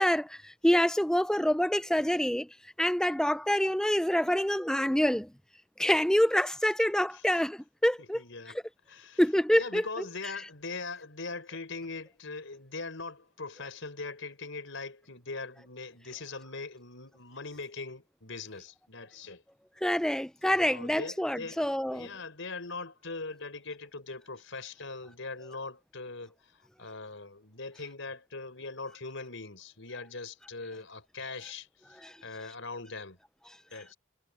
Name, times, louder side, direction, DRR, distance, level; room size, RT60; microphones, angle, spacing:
voice 1, 0.0-2.5 2.8-5.3 5.8-8.2 9.2-9.9 19.8-22.1 32.0-32.1, equal, 5° left, 0.6 m, -26 dB
voice 2, 8.0-8.6 8.9-9.2 9.5-19.4 20.6-21.6 21.9-26.3 26.8-33.2 33.7-34.0, left 3 dB, 70° left, 4.7 m, -41 dB
head